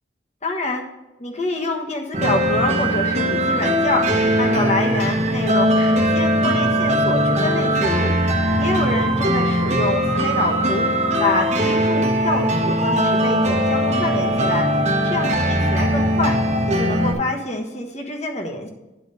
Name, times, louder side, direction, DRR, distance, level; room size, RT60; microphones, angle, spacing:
voice 1, 0.4-0.8 1.2-4.1 4.4-8.1 8.6-10.9 11.2-14.7 15.0-16.4 16.7-18.7, left 2 dB, 40° left, 2 dB, 1.2 m, -26 dB
sound 1, 2.1-17.1, equal, 40° right, 1.2 m, -20 dB
10.0 x 4.0 x 6.6 m, 1.0 s
head